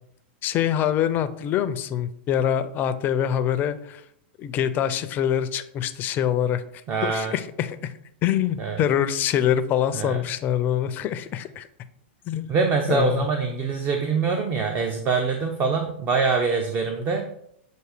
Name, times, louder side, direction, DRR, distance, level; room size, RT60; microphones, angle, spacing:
voice 1, 0.4-4.0 4.4-6.6 7.0-7.9 8.2-11.7 12.3-12.5 12.9-13.3, left 10 dB, 30° left, 12 dB, 0.5 m, -24 dB
voice 2, 6.9-7.3 8.6-8.8 9.9-10.2 12.5-17.2, right 4 dB, 30° right, 4 dB, 0.6 m, -24 dB
7.7 x 2.7 x 4.9 m, 0.71 s
hypercardioid pair, 130°, 6 cm